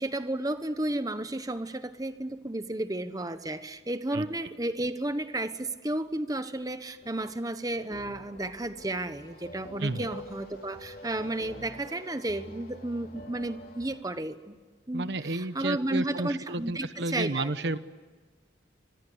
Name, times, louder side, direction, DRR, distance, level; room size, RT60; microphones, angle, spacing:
voice 1, 0.0-14.6 14.9-17.5, right 1 dB, 20° right, 10 dB, 1.2 m, -33 dB
sound 1, 7.0-14.0, left 1 dB, 50° left, 4.0 m, -47 dB
voice 2, 14.9-17.8, right 2 dB, 65° right, 13 dB, 1.0 m, -31 dB
28.5 x 25.5 x 8.1 m, 1.4 s
head